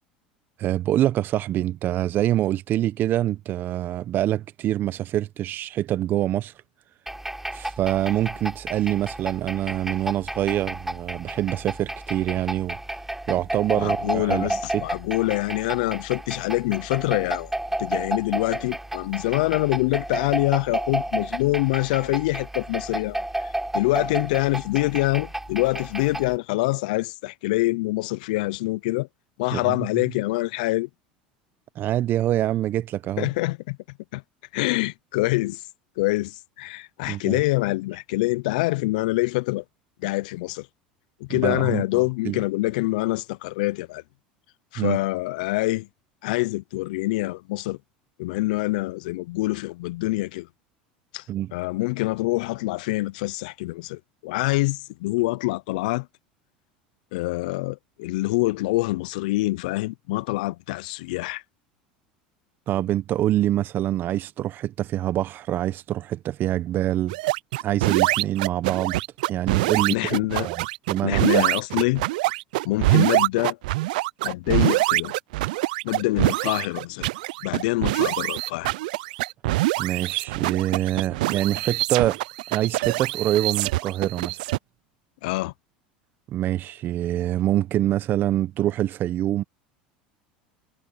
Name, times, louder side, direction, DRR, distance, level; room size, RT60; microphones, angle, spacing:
voice 1, 0.6-6.5 7.5-12.8 13.3-14.8 29.5-29.8 31.7-33.3 37.1-37.4 41.3-41.8 42.2-42.4 44.8-45.0 51.3-51.5 62.7-67.2 67.6-69.0 69.3-70.0 70.4-71.5 79.8-82.2 82.5-84.4 86.3-89.4, right 13 dB, 45° right, 1.2 m, -25 dB
sound 1, 7.1-26.4, right 1 dB, 5° right, 3.6 m, -32 dB
voice 2, 13.8-17.5 17.8-29.1 29.4-30.9 33.2-33.8 34.1-34.2 34.5-35.6 36.0-39.6 40.0-40.7 41.2-44.0 44.7-45.9 46.2-47.8 48.2-50.5 51.1-51.2 51.5-56.1 57.1-61.4 69.9-70.5 71.0-72.0 72.6-73.6 74.2-75.1 75.8-77.1 77.4-78.7 85.2-85.5, left 21 dB, 70° left, 0.8 m, -25 dB
sound 2, 67.1-84.6, right 19 dB, 75° right, 0.5 m, -24 dB
hypercardioid pair, 85°, 5 cm